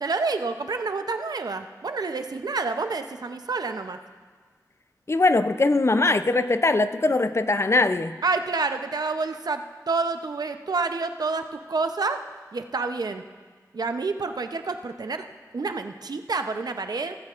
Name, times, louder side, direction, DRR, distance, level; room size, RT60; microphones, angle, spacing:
voice 1, 0.0-4.0 8.2-9.6 9.9-11.4 11.7-12.2 12.5-13.2 13.7-15.2 15.5-17.2, right 4 dB, 85° right, 7 dB, 0.6 m, -28 dB
voice 2, 5.1-8.2, left 2 dB, 45° left, 10 dB, 0.5 m, -21 dB
16.5 x 15.0 x 2.5 m, 1.5 s
wide cardioid pair, 75°, 7 cm